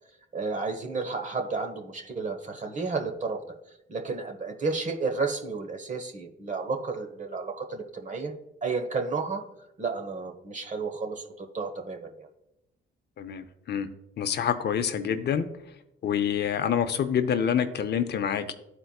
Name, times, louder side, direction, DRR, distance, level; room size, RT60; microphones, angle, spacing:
voice 1, 0.3-3.4 3.9-8.3 8.6-9.4 9.8-12.3, right 4 dB, 40° right, 5 dB, 1.1 m, -32 dB
voice 2, 13.2-13.9 14.2-15.4 16.0-18.5, left 8 dB, 55° left, 9 dB, 0.6 m, -27 dB
13.0 x 4.4 x 2.3 m, 0.86 s
cardioid pair, 90°, 20 cm